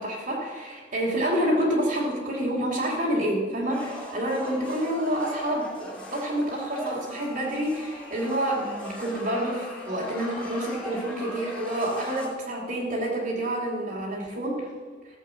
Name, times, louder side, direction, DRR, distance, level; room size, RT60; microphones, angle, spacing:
voice 1, 0.0-14.7, right 1 dB, 50° right, -4 dB, 2.8 m, -28 dB
sound 1, 3.7-12.3, equal, 5° left, 3.1 m, -39 dB
15.5 x 7.3 x 7.6 m, 1.5 s
head